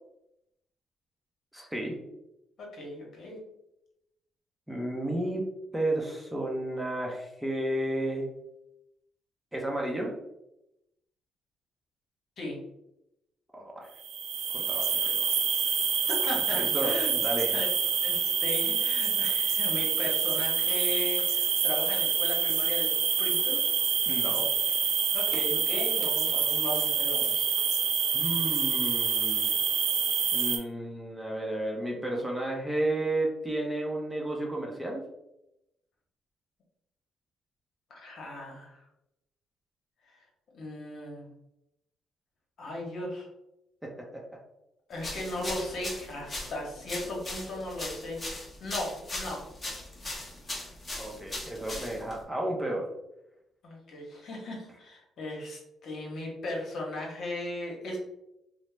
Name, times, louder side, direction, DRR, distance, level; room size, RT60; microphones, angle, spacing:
voice 1, 1.5-2.0 4.7-5.5 5.7-8.3 9.5-10.1 13.5-13.9 14.5-15.3 16.5-17.5 24.1-24.5 28.1-29.5 30.3-35.0 43.8-44.2 51.0-52.8, right 1 dB, 5° right, -1 dB, 0.6 m, -32 dB
voice 2, 2.6-3.4 12.4-12.6 16.1-17.1 17.5-17.7 18.0-23.6 25.1-27.5 37.9-38.8 40.0-40.2 40.5-41.3 42.6-43.3 44.9-49.4 53.6-58.0, left 1 dB, 65° left, -2 dB, 1.0 m, -37 dB
sound 1, 14.0-30.6, right 7 dB, 85° right, 0.4 m, -27 dB
sound 2, 45.0-52.2, left 1 dB, 25° left, 0.8 m, -39 dB
2.7 x 2.0 x 3.2 m, 0.86 s
cardioid pair, 90°, 0 cm